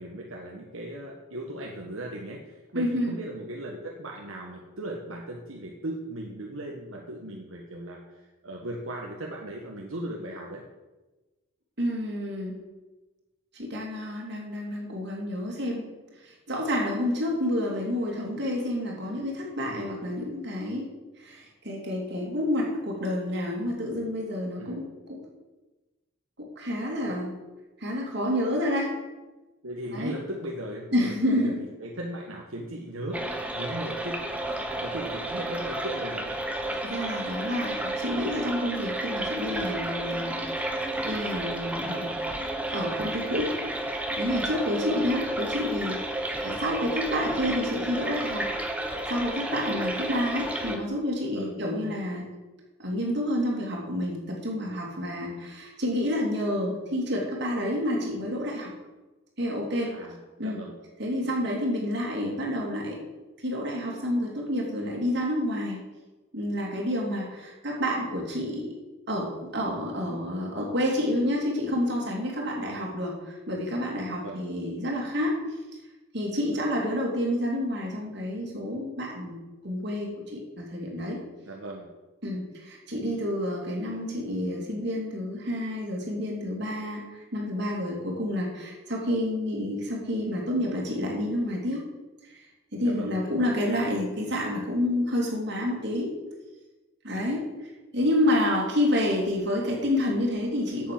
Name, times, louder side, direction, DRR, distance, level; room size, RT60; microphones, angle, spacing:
voice 1, 0.0-10.6 19.6-19.8 24.6-24.8 27.0-27.1 29.6-33.2 33.5-34.2 34.8-36.3 44.8-45.1 51.3-51.6 59.8-60.7 74.2-74.5 81.4-81.9 92.8-93.2, right 1 dB, 75° right, -1 dB, 1.5 m, -37 dB
voice 2, 2.7-3.1 11.8-12.6 13.5-15.8 16.2-20.9 21.2-25.2 26.6-27.3 27.8-29.0 29.9-30.2 30.9-31.6 36.8-40.4 41.0-42.2 42.7-43.5 44.2-48.5 49.1-52.3 52.8-58.7 59.4-59.9 60.4-60.6 61.0-63.0 63.4-65.8 66.3-68.7 69.1-75.4 76.1-81.2 82.2-91.8 92.2-96.1 97.0-100.9, left 1 dB, 55° right, -1 dB, 3.2 m, -29 dB
sound 1, 33.1-50.8, right 1 dB, 5° right, 1.2 m, -32 dB
8.6 x 8.3 x 7.8 m, 1.1 s
head